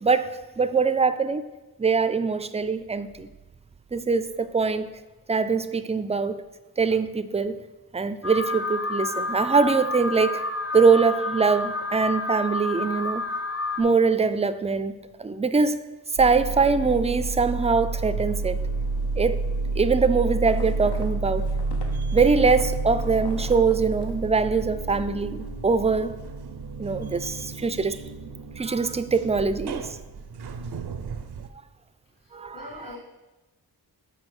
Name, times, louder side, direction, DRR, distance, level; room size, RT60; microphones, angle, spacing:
voice 1, 0.0-1.4 1.8-3.3 3.9-5.0 5.3-6.4 6.8-7.6 7.9-10.4 10.7-13.3 13.8-14.9 15.2-15.8 16.2-18.6 19.2-19.4 19.8-21.5 22.1-26.2 26.8-28.0 28.6-29.9 32.3-33.0, right 4 dB, 20° right, 0.3 m, -23 dB
Alarm, 8.2-13.8, left 2 dB, 35° left, 0.7 m, -29 dB
sound 1, 16.2-31.5, right 3 dB, 75° right, 0.5 m, -30 dB
sound 2, 20.5-24.8 25.1-25.6, left 3 dB, 80° left, 0.9 m, -44 dB
voice 2, 32.2-33.0, left 3 dB, 55° left, 1.3 m, -43 dB
6.2 x 4.5 x 4.8 m
wide cardioid pair, 55°, 39 cm